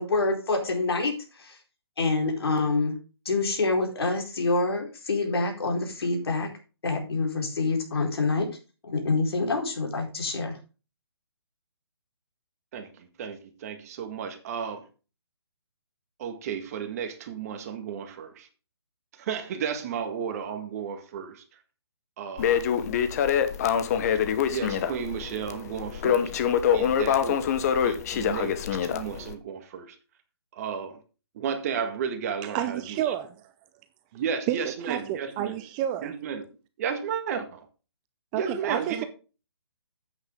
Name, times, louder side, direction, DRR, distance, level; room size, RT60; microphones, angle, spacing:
voice 1, 0.0-1.6 2.0-2.9 3.2-6.5 6.8-8.5 8.9-10.6, left 3 dB, 65° left, 4.5 m, -26 dB
voice 2, 12.7-14.9 16.2-18.5 19.1-21.4 22.2-22.6 24.5-26.3 26.7-30.0 30.5-31.0 31.3-33.1 34.1-35.5 36.0-36.4 36.8-37.7 38.3-39.1, right 7 dB, 35° right, 1.8 m, -33 dB
Crackle, 22.4-29.3, left 8 dB, 35° left, 1.0 m, -25 dB
voice 3, 32.5-33.5 34.5-34.6 34.9-36.1 38.3-39.0, right 11 dB, 20° right, 0.5 m, -30 dB
9.6 x 8.8 x 3.7 m
hypercardioid pair, 150°, 14 cm